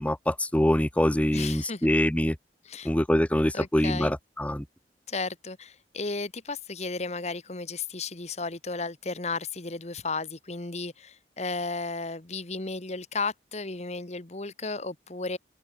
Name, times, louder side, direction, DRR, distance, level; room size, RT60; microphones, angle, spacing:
voice 1, 0.0-2.4 2.8-4.6, left 1 dB, 10° left, 0.6 m, -24 dB
voice 2, 1.3-1.9 2.6-2.9 3.5-4.1 5.1-15.4, left 3 dB, 40° left, 1.4 m, -34 dB
open air
head